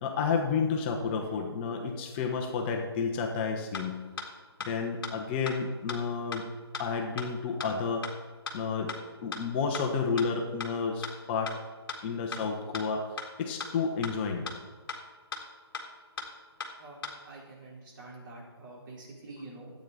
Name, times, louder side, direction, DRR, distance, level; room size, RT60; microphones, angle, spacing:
voice 1, 0.0-4.0 4.6-6.4 6.8-8.1 8.5-8.9 9.2-11.5 12.0-13.1 13.4-14.5, left 5 dB, 25° left, 3 dB, 1.1 m, -31 dB
sound 1, 3.4-3.5 3.7-3.8 4.2-4.3 4.6-4.7 5.0-5.1 5.5-5.6 5.9-6.0 6.3-6.4 6.7-6.8 7.2-7.3 7.6-7.7 8.0-8.1 8.5-8.6 8.9-9.0 9.3-9.4 9.7-9.8 10.2-10.3 10.6-10.7 11.0-11.1 11.5-11.6 11.9-12.0 12.3-12.4 12.7-12.8 13.2-13.3 13.6-13.7 14.0-14.1 14.5-14.6 14.9-15.0 15.3-15.4 15.7-15.8 16.2-16.3 16.6-16.7 17.0-17.1, left 5 dB, 55° left, 1.8 m, -36 dB
voice 2, 16.8-19.7, right 2 dB, 50° right, -4 dB, 4.3 m, -47 dB
13.5 x 8.7 x 4.2 m, 1.4 s
figure-of-eight pair, 145°, 14 cm